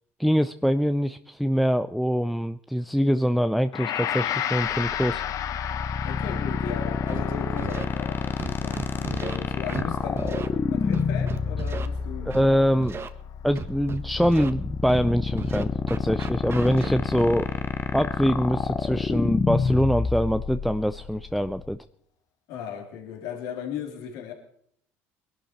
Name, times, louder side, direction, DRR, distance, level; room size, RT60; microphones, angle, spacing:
voice 1, 0.2-5.2 12.3-13.0 13.4-17.5 17.9-21.8, equal, ahead, 0.6 m, -24 dB
Gong, 3.7-12.9, left 10 dB, 55° left, 0.9 m, -34 dB
sound 1, 4.7-21.8, left 5 dB, 30° left, 1.0 m, -29 dB
voice 2, 6.0-12.8 22.5-24.3, left 7 dB, 75° left, 3.2 m, -36 dB
Scratching (performance technique), 7.1-7.2 7.6-7.8 8.4-9.4 9.7-9.9 10.2-10.5 10.9-11.9 12.3-12.5 12.8-13.1 13.6-14.5 14.9-15.0 15.4-17.2, right 6 dB, 35° right, 1.3 m, -35 dB
21.0 x 12.0 x 4.3 m
hypercardioid pair, 75°, 7 cm